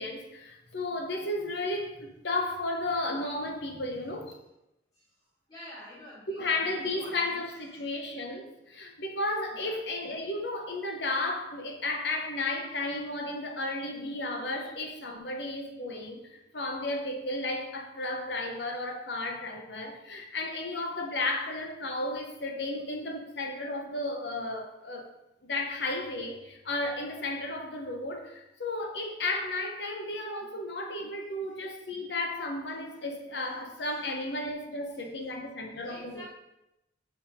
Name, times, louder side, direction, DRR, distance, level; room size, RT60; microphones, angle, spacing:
voice 1, 0.0-4.3 6.4-25.1 25.4-36.2, left 2 dB, 65° left, 3 dB, 1.1 m, -33 dB
voice 2, 5.5-7.9 9.5-9.8 15.3-15.4 30.4-30.6 31.4-31.6 32.9-33.0 33.7-34.4 34.9-35.1 35.8-36.2, left 1 dB, 20° left, -11 dB, 2.3 m, -50 dB
6.9 x 5.0 x 3.6 m, 0.86 s
head